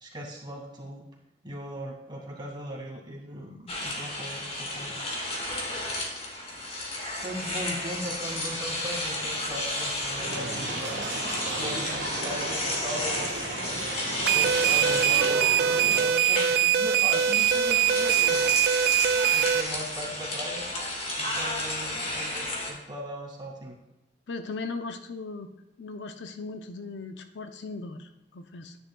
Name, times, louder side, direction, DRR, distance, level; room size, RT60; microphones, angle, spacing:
voice 1, 0.0-1.0 1.4-4.5 4.7-5.0 7.2-11.0 11.6-13.3 14.2-15.6 16.0-18.6 19.3-20.6 21.2-23.8, equal, 25° right, -2 dB, 2.1 m, -39 dB
sound 1, 3.7-22.7, left 1 dB, 35° left, 1.7 m, -32 dB
sound 2, 10.1-16.0, right 2 dB, 90° right, 1.4 m, -34 dB
sound 3, 14.3-19.6, right 10 dB, 60° right, 0.3 m, -23 dB
voice 2, 24.3-25.5 25.8-28.8, left 3 dB, 75° left, 8 dB, 0.6 m, -38 dB
10.5 x 9.7 x 2.3 m, 0.97 s
head